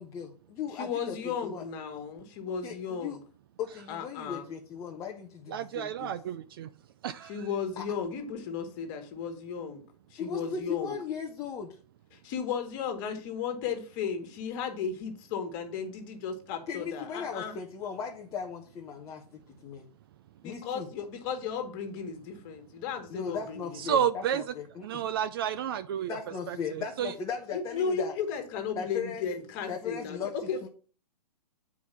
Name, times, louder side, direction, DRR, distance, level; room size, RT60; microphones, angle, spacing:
voice 1, 0.0-1.6 2.6-3.2 3.6-6.1 7.8-7.9 10.1-11.8 16.5-19.9 20.4-20.9 23.1-25.0 26.1-28.1 28.8-29.2 29.7-30.3 30.6-30.7, left 6 dB, 15° left, 0.8 m, -37 dB
voice 2, 0.7-3.2 3.9-4.5 7.2-9.8 10.1-10.9 12.1-17.6 20.4-23.8 27.5-30.7, left 6 dB, 30° left, 1.7 m, -35 dB
voice 3, 5.5-6.7 7.0-7.3 23.8-24.4 24.8-26.2 26.5-27.1, right 9 dB, 35° right, 0.4 m, -31 dB
7.8 x 4.8 x 5.6 m
hypercardioid pair, 150°, 20 cm